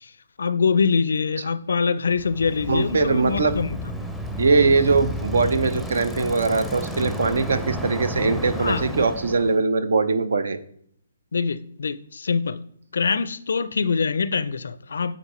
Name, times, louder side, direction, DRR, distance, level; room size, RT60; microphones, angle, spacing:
voice 1, 0.4-3.8 8.6-8.8 11.3-12.6 12.9-15.2, left 5 dB, 70° left, 0.4 m, -24 dB
Bicycle, 2.1-9.6, equal, ahead, 0.6 m, -32 dB
voice 2, 2.7-3.5 4.4-10.6, right 4 dB, 70° right, 0.6 m, -21 dB
9.0 x 3.8 x 3.1 m
figure-of-eight pair, 135°, 0 cm